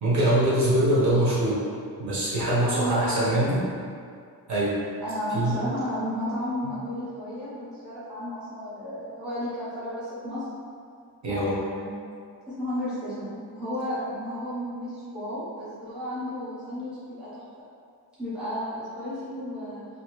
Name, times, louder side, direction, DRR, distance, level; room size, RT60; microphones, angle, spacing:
voice 1, 0.0-1.6 2.0-3.6 4.5-4.7 5.3-5.6 11.2-11.6, right 1 dB, 50° right, -9 dB, 1.0 m, -23 dB
voice 2, 2.6-3.3 5.0-10.4 11.3-12.0 12.6-17.4 18.2-19.8, equal, ahead, -13 dB, 0.7 m, -33 dB
2.8 x 2.7 x 2.9 m, 2.3 s
cardioid pair, 170°, 38 cm